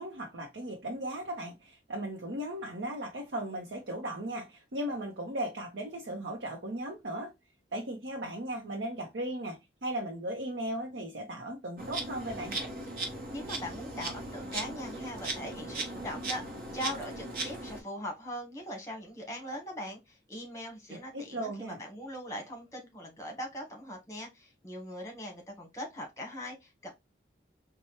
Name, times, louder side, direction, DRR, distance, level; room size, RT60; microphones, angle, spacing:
voice 1, 0.0-7.3 7.7-12.6 20.9-21.8, right 1 dB, 80° right, 0.8 m, -37 dB
Insect, 11.8-17.8, right 2 dB, 50° right, 1.0 m, -38 dB
voice 2, 13.3-16.4 16.7-26.9, equal, 15° left, 1.2 m, -41 dB
4.3 x 2.2 x 3.0 m
head